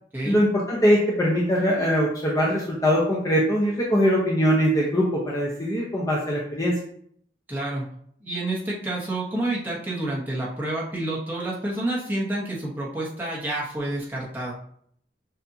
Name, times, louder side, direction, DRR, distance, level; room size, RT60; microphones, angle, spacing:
voice 1, 0.2-6.8, equal, 20° left, -4 dB, 0.6 m, -22 dB
voice 2, 7.5-7.9 8.2-14.5, right 1 dB, 10° right, -5 dB, 1.1 m, -29 dB
6.7 x 2.6 x 2.7 m, 0.65 s
head